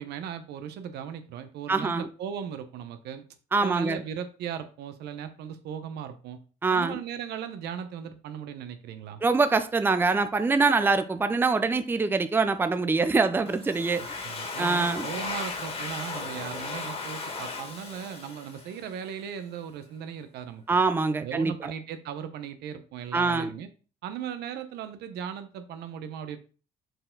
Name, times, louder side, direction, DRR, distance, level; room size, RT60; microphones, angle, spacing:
voice 1, 0.0-3.2 3.6-6.4 6.7-9.2 14.0-20.6 21.2-23.7 24.0-26.4, right 8 dB, 75° right, 0.9 m, -37 dB
voice 2, 1.7-2.1 3.5-4.0 6.6-7.0 9.2-14.0 14.6-15.1 20.7-21.7 23.1-23.5, right 4 dB, 10° right, 0.5 m, -24 dB
Domestic sounds home sounds, 13.5-19.1, left 3 dB, 35° left, 1.8 m, -36 dB
6.6 x 4.5 x 3.8 m
cardioid pair, 110°, 17 cm